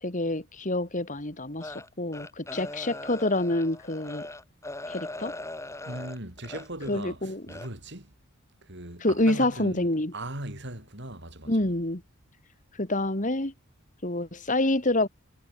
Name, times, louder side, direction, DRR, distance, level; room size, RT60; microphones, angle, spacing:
voice 1, 0.0-4.3 4.9-5.3 6.9-7.5 9.0-10.1 11.5-12.0 12.8-13.5 14.0-15.1, left 1 dB, 35° left, 2.5 m, -27 dB
sound 1, 1.6-7.0 7.5-7.7, left 2 dB, 15° left, 2.2 m, -40 dB
voice 2, 5.9-8.1 8.6-9.8 10.1-11.7, right 1 dB, 55° right, 7.0 m, -39 dB
head